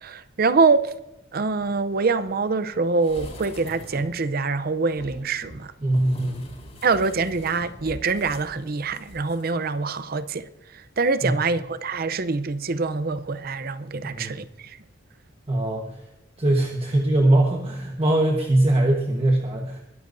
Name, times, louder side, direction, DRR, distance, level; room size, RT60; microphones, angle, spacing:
voice 1, 0.0-0.9 1.3-5.7 6.8-10.5 10.7-14.8, right 4 dB, 50° right, 0.6 m, -24 dB
sound 1, 3.0-4.2 4.9-9.4 9.7-9.8, equal, 35° left, 5.0 m, -42 dB
voice 2, 5.8-6.4 11.2-11.3 14.1-14.3 15.5-15.8 16.4-19.8, right 1 dB, 30° right, 1.3 m, -21 dB
22.0 x 13.5 x 2.7 m
head